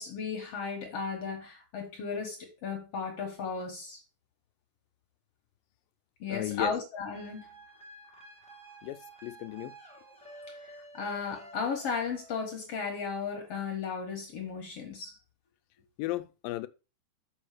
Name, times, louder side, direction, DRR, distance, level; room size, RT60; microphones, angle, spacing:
voice 1, 0.0-4.0 6.2-7.4 10.9-15.2, left 5 dB, 55° left, 1.9 m, -35 dB
voice 2, 6.3-6.7 8.8-9.7 16.0-16.7, left 17 dB, 85° left, 2.3 m, -35 dB
sound 1, 7.1-12.6, right 2 dB, 5° left, 0.8 m, -51 dB
6.3 x 6.3 x 4.9 m
omnidirectional pair, 4.1 m